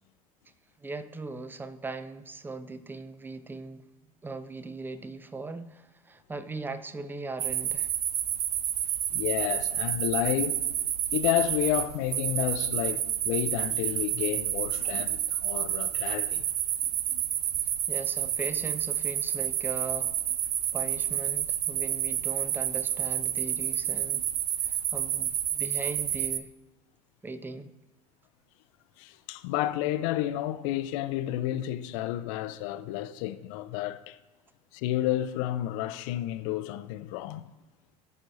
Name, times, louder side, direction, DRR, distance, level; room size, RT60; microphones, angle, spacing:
voice 1, 0.8-3.8 4.2-7.9 17.9-20.2 20.7-24.3 24.6-26.5 27.2-27.7, right 3 dB, 10° right, 0.6 m, -39 dB
sound 1, 7.4-26.4, right 10 dB, 70° right, 0.5 m, -29 dB
voice 2, 9.1-10.6 11.1-16.4 29.0-34.2 34.7-37.5, left 13 dB, 55° left, 0.6 m, -31 dB
17.0 x 6.1 x 2.8 m
figure-of-eight pair, 70°, 20 cm